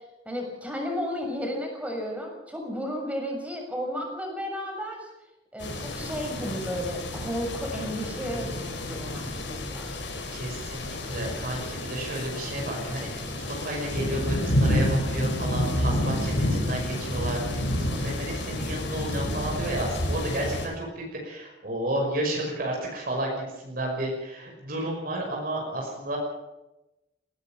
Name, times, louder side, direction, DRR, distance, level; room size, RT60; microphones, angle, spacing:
voice 1, 0.2-5.1 5.5-9.9, equal, 10° right, 1 dB, 6.7 m, -33 dB
sound 1, 5.6-20.7, left 1 dB, 80° left, 5.5 m, -29 dB
voice 2, 10.3-26.2, right 1 dB, 50° right, 0 dB, 5.9 m, -32 dB
20.0 x 18.0 x 7.5 m, 0.98 s
head